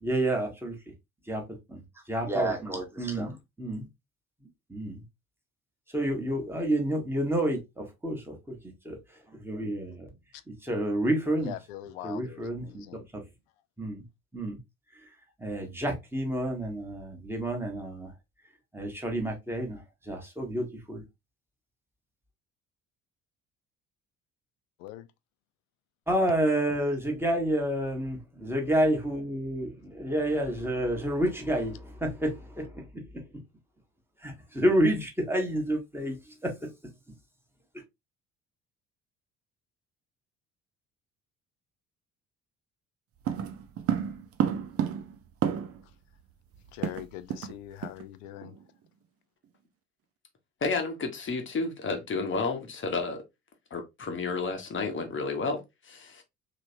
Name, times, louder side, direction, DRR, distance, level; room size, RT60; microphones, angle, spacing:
voice 1, 0.0-0.9 1.3-3.9 4.7-5.0 5.9-9.0 9.3-10.1 10.5-11.5 12.0-13.2 13.8-14.0 14.3-14.6 14.9-15.0 15.4-18.1 18.7-21.0 26.1-33.2 34.2-36.7, right 1 dB, 5° right, 1.3 m, -30 dB
voice 2, 11.4-13.0 24.8-25.1 46.7-48.6, left 13 dB, 65° left, 0.5 m, -42 dB
sound 1, 43.3-45.9 46.2-46.3 46.5-47.6 47.8-48.0 48.4-48.6, right 8 dB, 35° right, 0.6 m, -30 dB
voice 3, 50.6-53.2 53.7-56.2, left 4 dB, 30° left, 1.0 m, -31 dB
3.3 x 3.0 x 2.6 m
figure-of-eight pair, 50°, 43 cm